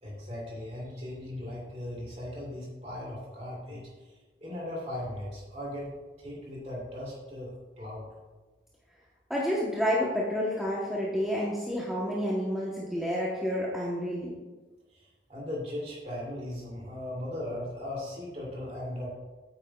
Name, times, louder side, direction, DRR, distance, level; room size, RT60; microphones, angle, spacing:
voice 1, 0.0-3.8 4.4-8.1 14.9-15.0 15.3-19.1, left 1 dB, 35° right, -5 dB, 2.6 m, -38 dB
voice 2, 9.3-14.4, equal, ahead, -6 dB, 0.9 m, -29 dB
8.8 x 8.3 x 2.3 m, 1.2 s
head